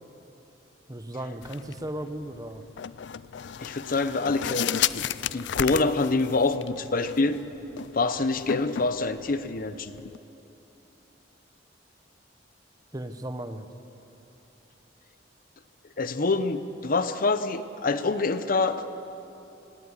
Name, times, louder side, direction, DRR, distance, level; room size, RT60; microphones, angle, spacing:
voice 1, 0.9-2.6 12.9-13.7, right 1 dB, 20° right, 9 dB, 0.9 m, -36 dB
sound 1, 1.4-10.2, left 10 dB, 70° left, 0.4 m, -34 dB
voice 2, 3.6-5.1 5.3-7.4 7.9-10.0 16.0-18.9, left 3 dB, 50° left, 11 dB, 0.8 m, -26 dB
18.5 x 17.5 x 9.7 m, 3.0 s
head